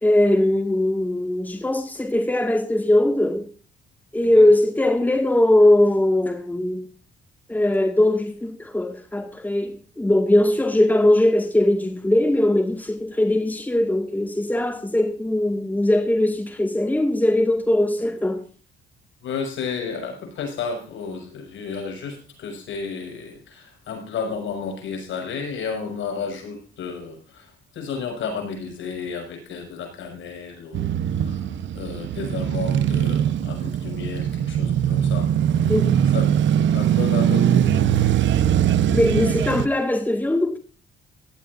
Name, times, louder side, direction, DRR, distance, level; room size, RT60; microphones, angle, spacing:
voice 1, 0.0-3.5 4.1-6.8 7.5-18.4 35.7-35.8 38.9-40.6, left 1 dB, 10° left, 2.1 m, -20 dB
voice 2, 19.2-27.5 27.7-31.0 31.2-31.4 31.7-35.3 36.1-36.3 36.7-37.9, left 5 dB, 75° left, 6.4 m, -32 dB
Male speech man speaking / Motorcycle / Idling, 30.7-39.7, right 10 dB, 70° right, 1.1 m, -21 dB
17.0 x 13.0 x 2.7 m
cardioid pair, 90°, 20 cm